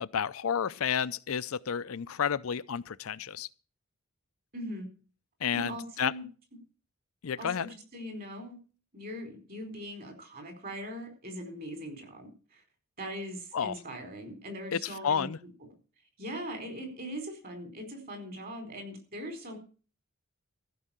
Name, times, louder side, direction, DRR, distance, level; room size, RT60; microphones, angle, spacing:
voice 1, 0.0-3.5 5.4-6.1 7.2-7.7 13.5-13.8 14.7-15.4, left 7 dB, 70° left, 0.5 m, -31 dB
voice 2, 4.5-4.9 5.5-6.2 7.4-8.6 8.9-12.6 13.0-15.3 16.2-19.6, equal, 45° right, 4.6 m, -41 dB
15.0 x 5.5 x 8.9 m
head